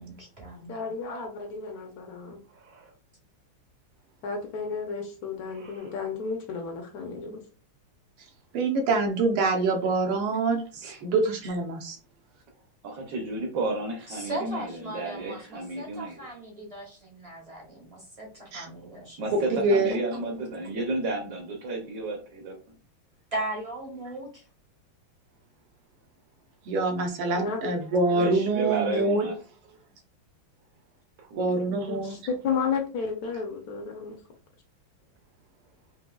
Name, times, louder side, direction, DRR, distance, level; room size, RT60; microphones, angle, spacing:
voice 1, 0.0-0.7 14.1-19.3 23.3-24.5, right 1 dB, 55° right, -1 dB, 0.4 m, -38 dB
voice 2, 0.7-2.4 4.2-7.4 27.4-27.8 31.7-34.2, left 5 dB, 70° left, 3 dB, 0.8 m, -32 dB
voice 3, 2.5-2.9 5.5-5.9 10.8-11.0 12.8-16.2 19.2-22.6 28.1-29.4 31.2-31.6, right 2 dB, 70° right, 3 dB, 1.2 m, -32 dB
voice 4, 8.5-12.0 18.5-18.7 19.3-20.0 26.7-29.3 31.4-32.1, right 3 dB, 90° right, 2 dB, 1.8 m, -25 dB
5.4 x 2.6 x 2.3 m, 0.37 s
omnidirectional pair, 2.3 m